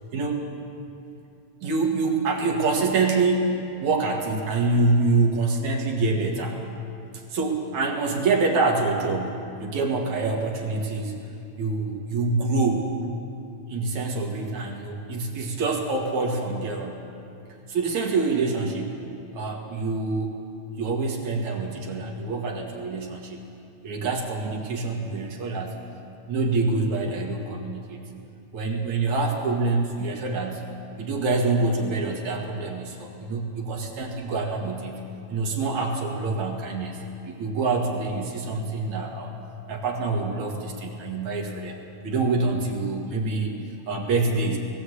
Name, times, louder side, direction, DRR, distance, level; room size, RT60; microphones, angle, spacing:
voice 1, 0.1-0.5 1.6-6.6 7.3-11.2 11.6-12.9 13.7-17.1 17.7-19.0 19.3-20.4 20.8-23.4 23.8-25.8 26.3-28.0 28.5-30.7 31.0-35.0 35.3-39.3 39.7-41.8 42.0-43.6 43.9-44.6, right 3 dB, 55° right, 0 dB, 2.8 m, -26 dB
20.0 x 16.0 x 8.2 m, 2.7 s
omnidirectional pair, 4.5 m